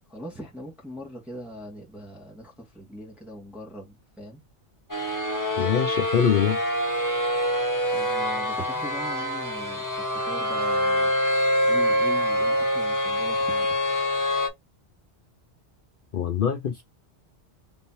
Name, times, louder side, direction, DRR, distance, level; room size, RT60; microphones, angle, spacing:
voice 1, 0.1-4.4 7.9-11.1 11.7-13.7, equal, ahead, 1.7 m, -41 dB
sound 1, 4.9-14.5, equal, 15° left, 1.2 m, -25 dB
voice 2, 5.6-6.6 16.1-16.8, left 8 dB, 55° left, 0.8 m, -23 dB
4.1 x 3.5 x 2.7 m
omnidirectional pair, 1.2 m